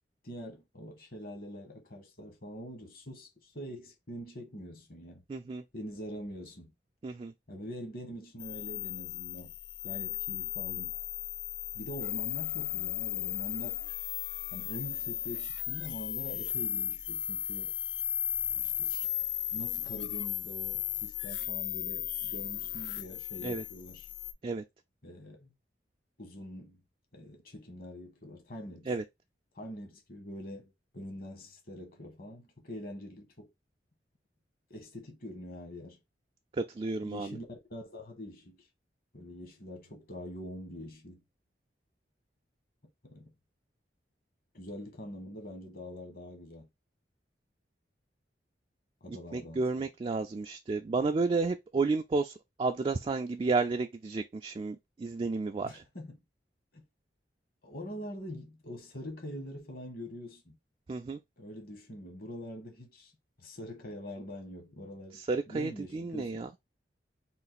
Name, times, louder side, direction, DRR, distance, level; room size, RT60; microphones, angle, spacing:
voice 1, 0.2-5.2 5.7-6.7 7.5-9.5 9.8-10.9 11.7-13.8 14.5-17.8 18.6-19.1 19.5-24.1 25.0-25.5 26.2-26.8 27.1-28.9 29.5-33.5 34.7-36.0 37.0-38.7 39.1-41.2 43.0-43.3 44.5-46.7 49.0-49.9 55.6-56.2 56.7-56.8 57.6-60.6 61.4-63.1 63.4-66.4, equal, 55° left, 1.4 m, -44 dB
voice 2, 5.3-5.6 7.0-7.3 23.4-23.6 24.4-24.6 28.9-29.0 36.6-37.4 49.1-55.8 60.9-61.2 65.1-66.5, right 3 dB, 30° right, 0.3 m, -32 dB
sound 1, 8.4-24.3, left 12 dB, 80° left, 0.4 m, -35 dB
3.8 x 2.5 x 4.1 m
head